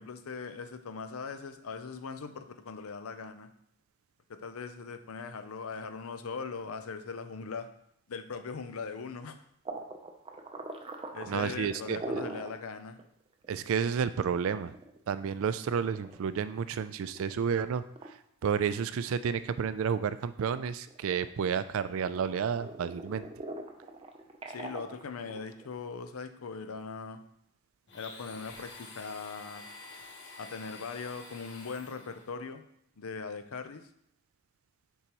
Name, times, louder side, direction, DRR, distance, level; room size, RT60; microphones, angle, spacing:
voice 1, 0.0-3.5 4.3-7.7 8.1-9.4 11.1-13.0 24.5-27.2 27.9-29.7 30.4-32.6 33.0-33.8, left 5 dB, 75° left, 9 dB, 0.6 m, -40 dB
sound 1, 9.6-12.6 13.0-13.1 13.4-13.5 14.3-16.6 17.1-17.5 17.9-18.1 18.6-19.6 19.9-21.7 22.1-25.7, right 2 dB, 25° right, 0.6 m, -42 dB
voice 2, 11.3-12.0 13.5-14.7 15.1-17.8 18.4-23.3, right 7 dB, 65° right, 13 dB, 0.3 m, -31 dB
Domestic sounds home sounds, 27.9-32.3, left 3 dB, 55° left, 1.0 m, -48 dB
6.8 x 4.7 x 3.0 m, 0.71 s
head